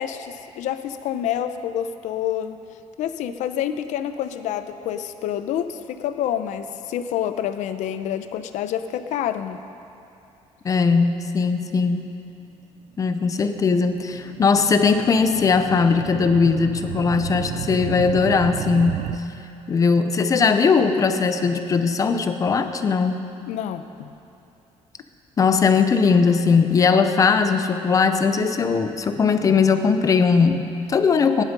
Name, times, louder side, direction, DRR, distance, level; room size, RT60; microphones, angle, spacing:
voice 1, 0.0-2.6 3.0-9.6 23.5-24.1, left 10 dB, 85° left, 10 dB, 0.7 m, -28 dB
voice 2, 10.6-12.1 13.0-19.1 19.7-23.2 25.4-31.4, left 5 dB, 30° left, 8 dB, 0.6 m, -19 dB
sound 1, 13.2-19.2, right 12 dB, 80° right, 0.5 m, -33 dB
17.0 x 11.0 x 5.3 m, 2.8 s
cardioid pair, 165°, 12 cm